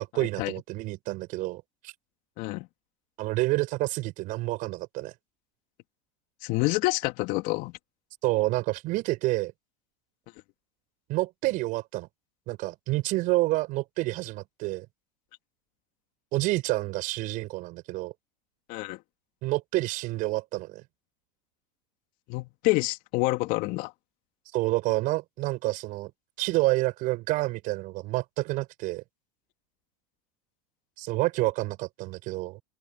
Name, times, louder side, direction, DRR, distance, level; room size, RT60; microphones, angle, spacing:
voice 1, 0.0-1.9 3.2-5.1 8.2-9.5 11.1-12.1 12.5-14.9 16.3-18.1 19.4-20.8 24.5-26.1 26.4-29.0 31.0-32.6, right 20 dB, 55° right, 6.2 m, -28 dB
voice 2, 2.4-2.7 6.4-7.7 18.7-19.0 22.3-23.9, left 23 dB, 60° left, 3.2 m, -27 dB
hypercardioid pair, 85°, 16 cm